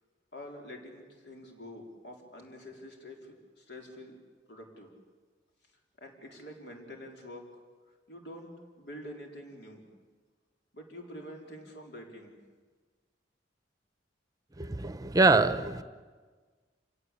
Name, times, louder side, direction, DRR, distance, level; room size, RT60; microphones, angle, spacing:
voice 1, 0.3-4.1 4.5-4.9 6.0-7.5 8.1-9.8 10.7-12.4, left 1 dB, 65° left, 1 dB, 4.4 m, -46 dB
voice 2, 14.6-15.8, right 3 dB, 20° right, 12 dB, 0.9 m, -24 dB
28.5 x 17.0 x 8.6 m, 1.5 s
head